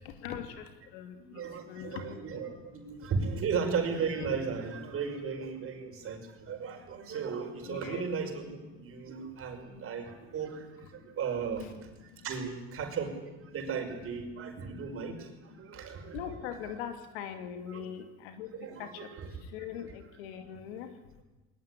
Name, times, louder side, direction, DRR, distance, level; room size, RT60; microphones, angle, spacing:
voice 1, 1.2-13.1 13.4-16.7 17.7-17.9 18.5-19.3, right 5 dB, 45° right, 5 dB, 5.4 m, -36 dB
voice 2, 1.7-2.2 7.6-8.1 16.1-18.5 18.8-18.9 19.5-20.9, left 9 dB, 85° left, 7 dB, 2.6 m, -40 dB
20.5 x 19.5 x 9.9 m, 1.1 s
supercardioid pair, 100°, 30 cm